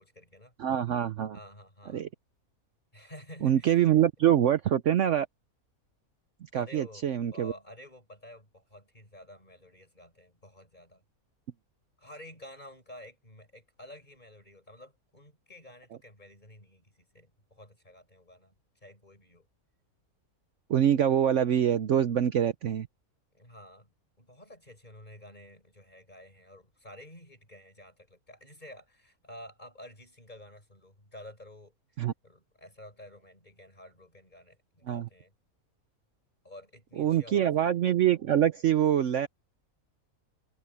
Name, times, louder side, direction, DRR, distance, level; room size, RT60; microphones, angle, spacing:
voice 1, 0.0-0.5 1.3-2.1 2.9-3.9 6.5-11.0 12.0-18.5 18.8-19.5 23.3-35.3 36.4-37.8, left 1 dB, 30° left, 6.1 m, -51 dB
voice 2, 0.6-1.4 1.9-2.1 3.4-5.3 6.5-7.5 20.7-22.9 32.0-32.1 34.9-35.1 37.0-39.3, right 10 dB, 60° right, 1.0 m, -25 dB
omnidirectional pair, 1.5 m